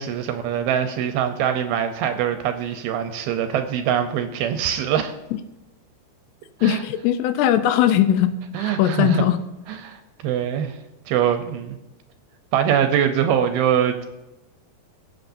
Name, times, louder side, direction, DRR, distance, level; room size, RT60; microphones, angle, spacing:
voice 1, 0.0-5.1 6.6-6.8 8.5-9.2 9.8-10.8 11.1-11.8 12.5-14.1, right 9 dB, 75° right, 7 dB, 2.4 m, -23 dB
voice 2, 6.6-8.3 8.6-9.4, left 11 dB, 80° left, 10 dB, 2.7 m, -19 dB
22.0 x 7.9 x 2.6 m, 0.97 s
omnidirectional pair, 4.9 m